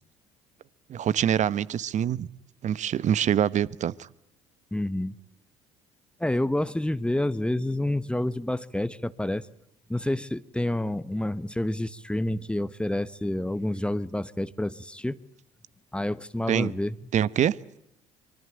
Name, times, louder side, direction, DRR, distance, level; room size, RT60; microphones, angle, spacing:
voice 1, 0.9-2.3 2.6-4.1 16.5-16.7 17.1-17.6, right 9 dB, 50° right, 20 dB, 1.0 m, -25 dB
voice 2, 4.7-5.1 6.2-9.4 9.9-15.2 15.9-16.9, left 1 dB, 5° left, 16 dB, 1.2 m, -28 dB
25.0 x 23.5 x 9.1 m, 0.79 s
hypercardioid pair, 55°, 16 cm